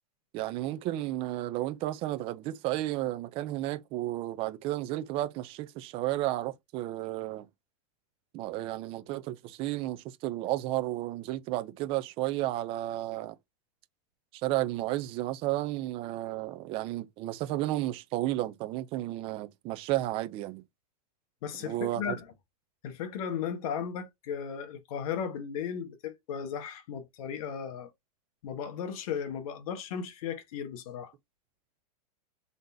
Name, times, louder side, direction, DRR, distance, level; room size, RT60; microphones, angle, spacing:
voice 1, 0.3-7.5 8.3-13.4 14.4-20.6 21.6-22.2, right 15 dB, 25° right, 0.4 m, -32 dB
voice 2, 21.4-22.3 22.8-27.9 28.4-31.1, left 7 dB, 60° left, 1.2 m, -36 dB
3.9 x 3.5 x 2.6 m
supercardioid pair, 155°, 21 cm